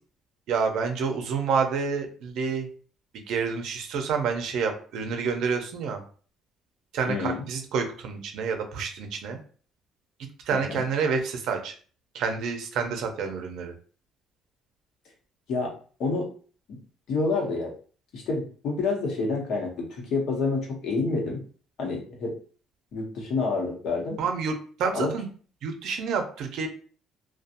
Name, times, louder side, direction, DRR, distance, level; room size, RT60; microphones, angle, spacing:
voice 1, 0.5-2.7 3.1-6.0 6.9-9.4 10.5-11.7 12.1-13.7 24.2-25.3 25.6-26.7, right 5 dB, 60° right, 5 dB, 0.6 m, -28 dB
voice 2, 7.1-7.4 10.5-10.8 15.5-15.7 16.0-16.3 16.7-16.8 17.1-17.7 18.1-21.4 21.8-22.3 22.9-24.2 25.0-25.1, left 3 dB, 55° left, 0 dB, 0.9 m, -28 dB
2.7 x 2.2 x 2.5 m, 0.41 s
cardioid pair, 160°, 0 cm